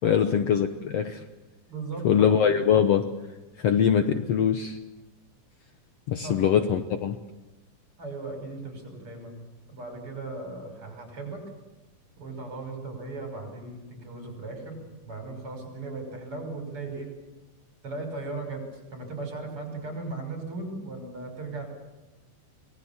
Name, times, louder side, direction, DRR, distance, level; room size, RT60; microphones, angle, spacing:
voice 1, 0.0-1.2 2.0-3.0 3.6-4.8 6.1-7.2, left 8 dB, 65° left, 7 dB, 1.8 m, -22 dB
voice 2, 1.7-2.3 6.2-6.4 8.0-9.4 9.7-11.4 12.2-14.8 15.0-17.1 17.8-18.6 18.9-21.7, right 3 dB, 40° right, 4 dB, 6.6 m, -37 dB
25.0 x 19.5 x 7.2 m, 1.1 s
omnidirectional pair, 3.6 m